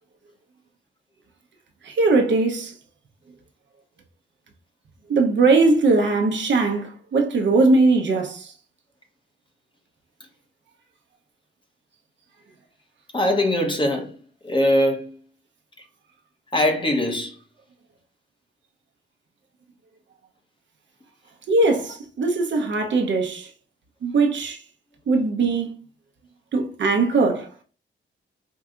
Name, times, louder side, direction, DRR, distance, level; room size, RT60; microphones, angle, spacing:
voice 1, 1.8-2.7 5.1-8.5 21.5-23.5 24.0-24.6 25.1-25.7 26.5-27.6, right 3 dB, 60° right, 0.8 m, -20 dB
voice 2, 13.1-14.1 14.4-15.2 16.5-17.3, left 1 dB, 25° left, 0.9 m, -21 dB
4.7 x 2.7 x 2.4 m
wide cardioid pair, 115°, 21 cm